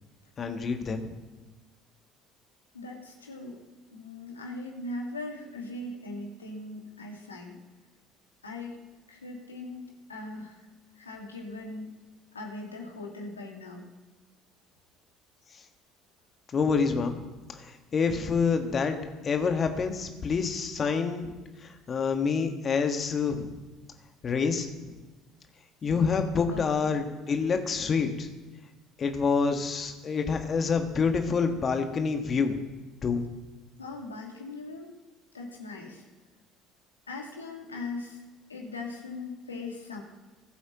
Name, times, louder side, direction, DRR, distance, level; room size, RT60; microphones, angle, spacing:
voice 1, 0.4-1.1 16.5-17.2 17.6-19.0 19.2-21.3 21.6-23.5 24.2-24.7 25.8-28.3 29.0-32.6 33.0-33.2, left 5 dB, 40° left, 6 dB, 1.5 m, -27 dB
voice 2, 2.7-3.6 3.9-7.6 8.4-8.8 9.1-10.7 11.0-12.0 12.3-13.8 26.5-26.6 33.8-34.9 35.3-36.0 37.1-38.2 38.5-40.0, left 2 dB, 90° left, 0 dB, 1.9 m, -40 dB
20.0 x 8.1 x 3.0 m, 1.2 s
figure-of-eight pair, 60°, 0 cm